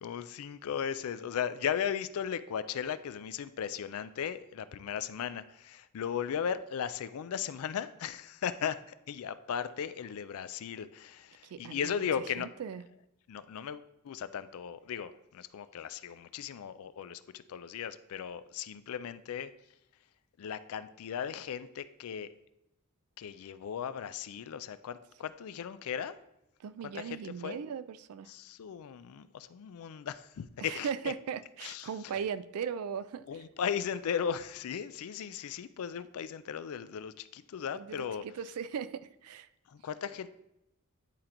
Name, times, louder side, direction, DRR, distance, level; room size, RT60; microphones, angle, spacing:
voice 1, 0.0-12.5 13.3-19.5 20.4-22.3 23.2-26.1 26.9-27.6 28.3-30.9 31.6-31.9 33.3-38.2 39.7-40.3, left 8 dB, 70° left, 14 dB, 0.4 m, -37 dB
voice 2, 11.4-12.1 12.4-12.8 26.6-28.3 30.6-33.3 37.7-39.5, right 7 dB, 70° right, 14 dB, 0.3 m, -38 dB
9.9 x 3.8 x 2.9 m, 0.84 s
head